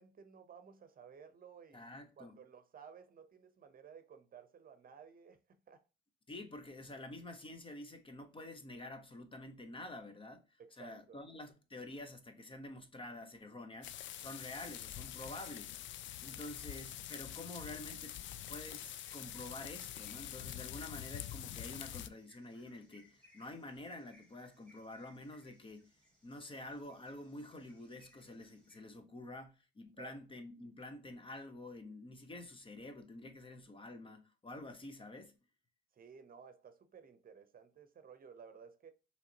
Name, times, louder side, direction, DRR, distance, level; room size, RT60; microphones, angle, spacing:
voice 1, 0.0-1.9 2.2-5.8 10.6-11.2 30.0-30.2 35.9-38.9, right 6 dB, 45° right, 0.8 m, -56 dB
voice 2, 1.7-2.3 6.3-15.7 16.2-18.1 18.5-25.9 26.2-35.4, left 2 dB, 25° left, 0.9 m, -49 dB
sound 1, 13.8-22.1, left 12 dB, 70° left, 0.4 m, -46 dB
sound 2, 16.8-28.8, equal, 5° left, 2.4 m, -69 dB
5.5 x 3.2 x 2.8 m
cardioid pair, 90°, 20 cm